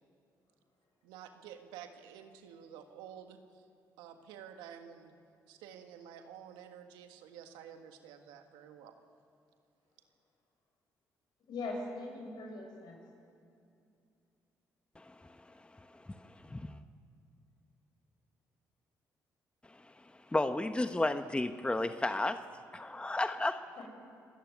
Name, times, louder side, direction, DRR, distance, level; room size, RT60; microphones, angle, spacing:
voice 1, 1.0-3.6 4.0-5.1 5.5-9.0, right 9 dB, 90° right, 6 dB, 1.7 m, -50 dB
voice 2, 11.5-13.0 23.8-23.9, left 2 dB, 70° left, 1 dB, 6.7 m, -40 dB
voice 3, 15.0-16.8 19.7-22.4 22.7-23.6, left 2 dB, 15° left, 9 dB, 1.0 m, -34 dB
26.5 x 14.0 x 9.5 m, 2.5 s
supercardioid pair, 55°, 8 cm